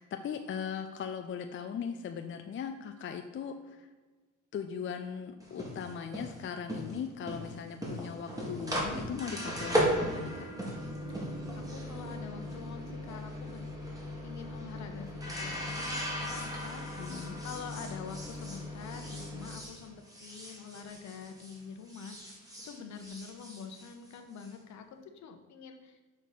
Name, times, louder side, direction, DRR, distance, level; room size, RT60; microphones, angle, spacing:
voice 1, 0.0-3.9 4.5-10.5 17.0-17.4, left 7 dB, 40° left, 6 dB, 0.5 m, -39 dB
sound 1, 5.4-21.6 21.9-24.5, equal, 10° right, 2.0 m, -37 dB
sound 2, 8.7-14.7 15.0-15.1, right 6 dB, 45° right, 0.8 m, -50 dB
voice 2, 11.1-13.7 14.2-26.0, left 6 dB, 65° left, 6 dB, 0.9 m, -46 dB
6.6 x 4.1 x 5.0 m, 1.3 s
cardioid pair, 90°, 30 cm